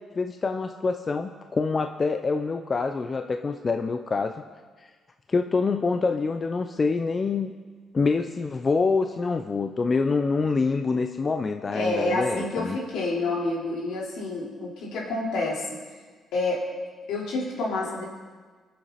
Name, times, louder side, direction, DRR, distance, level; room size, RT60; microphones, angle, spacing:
voice 1, 0.1-4.4 5.3-7.5 7.9-12.8, left 4 dB, 35° left, 6 dB, 0.6 m, -26 dB
voice 2, 11.7-15.7 16.3-16.6 17.1-18.0, left 2 dB, 80° left, -5 dB, 4.1 m, -28 dB
22.0 x 7.7 x 4.3 m, 1.5 s
cardioid pair, 85°, 0 cm